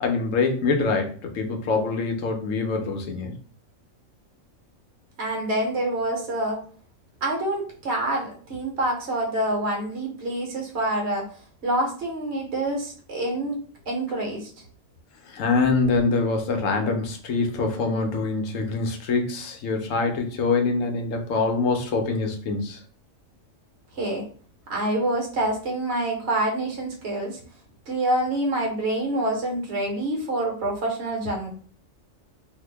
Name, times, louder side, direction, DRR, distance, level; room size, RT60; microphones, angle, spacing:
voice 1, 0.0-3.3 15.3-22.8, left 4 dB, 75° left, 3 dB, 1.0 m, -24 dB
voice 2, 5.2-6.6 7.2-11.3 11.6-13.6 13.9-14.5 23.9-24.2 24.7-27.4 27.9-31.5, right 1 dB, 55° right, -1 dB, 1.3 m, -26 dB
2.8 x 2.5 x 3.3 m, 0.43 s
omnidirectional pair, 1.4 m